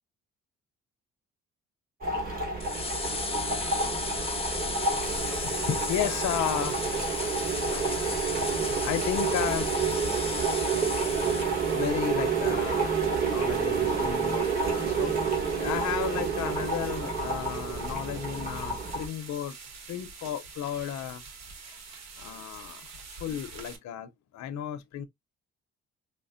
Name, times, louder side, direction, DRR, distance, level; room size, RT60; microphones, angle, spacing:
sound 1, 2.0-19.1, right 4 dB, 30° right, 2.0 m, -29 dB
sound 2, 2.6-11.9, left 4 dB, 20° left, 0.7 m, -35 dB
sound 3, 5.0-23.8, right 5 dB, 60° right, 1.1 m, -46 dB
voice 1, 5.3-9.6 11.7-15.1 15.5-19.6 19.9-21.2 21.7-22.9 23.2-25.0, left 10 dB, 65° left, 0.6 m, -34 dB
4.9 x 2.0 x 2.5 m
cardioid pair, 90°, 30 cm